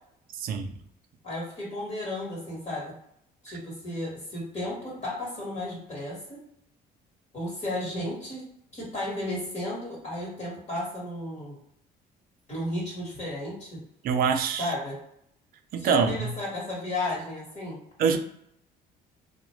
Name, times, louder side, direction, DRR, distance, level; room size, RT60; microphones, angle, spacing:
voice 1, 0.3-0.7 14.0-14.7 15.7-16.3 18.0-18.2, right 6 dB, 60° right, 6 dB, 0.4 m, -25 dB
voice 2, 1.2-2.9 3.4-6.4 7.3-8.4 8.7-11.6 12.5-13.8 14.6-15.0 15.8-17.8, left 1 dB, 40° left, -5 dB, 1.3 m, -33 dB
2.4 x 2.1 x 3.0 m, 0.73 s
cardioid pair, 110°, 17 cm